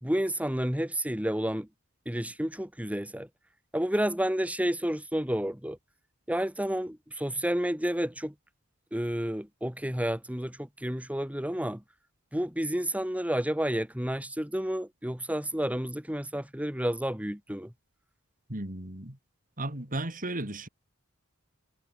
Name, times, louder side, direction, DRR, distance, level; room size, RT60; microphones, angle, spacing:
voice 1, 0.0-1.7 2.0-3.3 3.7-5.8 6.3-8.3 8.9-11.8 12.3-17.7, equal, 5° right, 3.3 m, -30 dB
voice 2, 18.5-19.2 19.6-20.7, right 1 dB, 40° right, 3.9 m, -35 dB
head